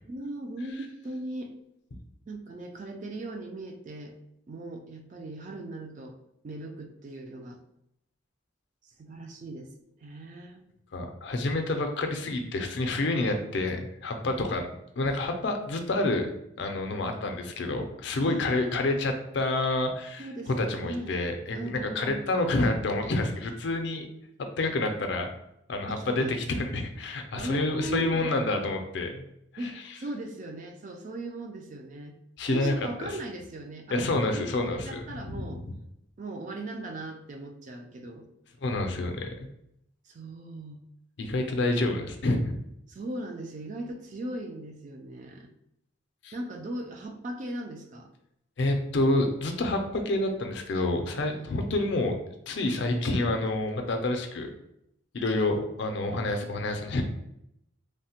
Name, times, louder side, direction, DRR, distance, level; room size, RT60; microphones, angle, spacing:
voice 1, 0.0-1.5 2.3-4.2 4.5-6.2 6.4-7.6 8.8-9.7 10.0-10.6 13.4-13.5 18.2-18.8 20.2-21.2 21.5-22.4 25.9-26.4 27.3-28.4 29.6-32.2 32.4-35.6 36.2-38.3 40.0-40.8 42.9-45.5 46.3-48.1 51.2-51.6, right 2 dB, 40° right, 4 dB, 0.3 m, -38 dB
voice 2, 10.9-14.7 15.0-16.3 16.6-20.3 20.6-24.1 24.6-25.3 25.7-29.3 29.6-29.7 32.4-32.7 33.0-33.1 33.9-35.6 38.6-39.5 41.2-42.5 46.2-46.3 48.6-54.5 55.1-57.0, left 2 dB, 60° left, 5 dB, 0.4 m, -28 dB
3.2 x 2.1 x 2.8 m, 0.78 s
head